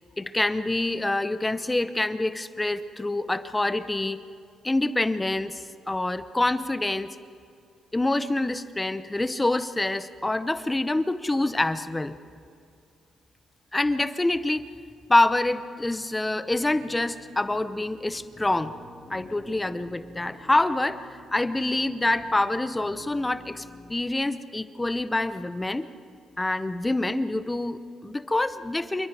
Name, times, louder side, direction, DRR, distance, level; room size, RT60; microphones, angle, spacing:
voice 1, 0.2-4.2 4.6-7.1 7.9-12.2 13.7-14.6 15.1-18.7 19.1-21.0 21.3-25.8 26.4-29.1, left 2 dB, 15° left, 12 dB, 0.9 m, -26 dB
sound 1, 16.5-23.9, left 2 dB, 30° left, 6.7 m, -49 dB
27.5 x 23.0 x 5.0 m, 2.4 s
cardioid pair, 90°, 0 cm